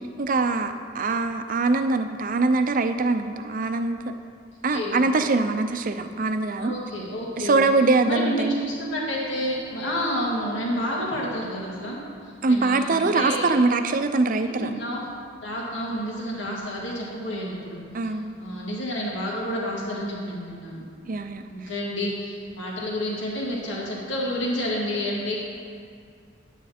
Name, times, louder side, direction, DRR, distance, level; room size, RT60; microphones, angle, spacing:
voice 1, 0.2-4.0 4.6-6.7 7.4-8.6 12.4-14.7 17.9-18.3 21.1-21.4, right 3 dB, 45° right, 8 dB, 0.5 m, -23 dB
voice 2, 6.6-7.6 8.1-12.0 12.5-13.5 14.3-15.0 15.4-17.8 18.4-21.2 21.5-25.4, equal, 90° left, -4 dB, 2.1 m, -29 dB
10.0 x 9.0 x 4.3 m, 2.3 s
head